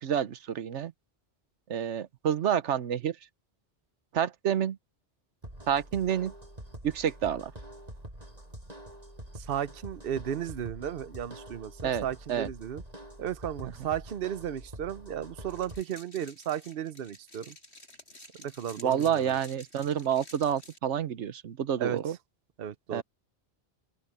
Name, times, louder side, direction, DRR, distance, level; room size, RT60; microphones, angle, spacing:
voice 1, 0.0-0.9 1.7-3.2 4.1-4.8 5.7-6.3 6.8-7.5 11.8-12.5 13.6-13.7 18.8-22.2 22.9-23.0, right 9 dB, 85° right, 1.2 m, -29 dB
sound 1, 5.4-15.8, right 1 dB, 35° right, 6.6 m, -46 dB
voice 2, 9.4-12.8 13.2-17.5 18.4-19.4 21.8-22.0 22.6-23.0, right 10 dB, 55° right, 0.9 m, -34 dB
sound 2, 15.5-20.8, left 1 dB, 70° left, 8.3 m, -52 dB
open air
omnidirectional pair, 1.2 m